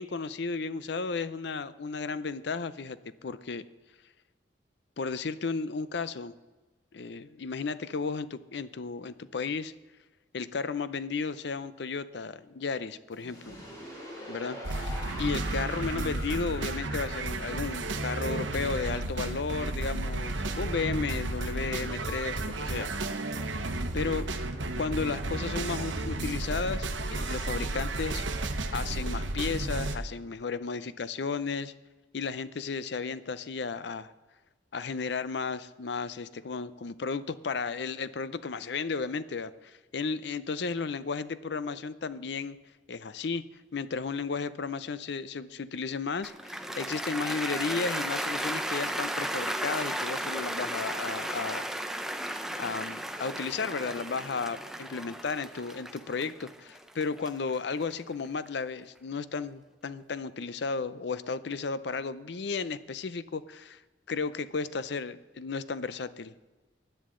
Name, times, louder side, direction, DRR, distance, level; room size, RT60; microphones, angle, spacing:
voice 1, 0.0-3.6 5.0-6.3 6.9-9.7 10.3-13.6 14.3-22.9 23.9-24.3 24.8-28.3 28.7-31.7 32.1-34.1 34.7-42.6 42.9-51.6 52.6-63.8 64.1-66.3, left 4 dB, 65° left, 15 dB, 0.5 m, -34 dB
sound 1, 13.1-20.0, equal, 20° left, 2.9 m, -44 dB
sound 2, 14.6-30.0, right 2 dB, 75° right, 1.0 m, -33 dB
Cheering / Applause, 46.2-58.5, right 1 dB, ahead, 0.5 m, -35 dB
16.5 x 10.5 x 3.8 m, 1.2 s
head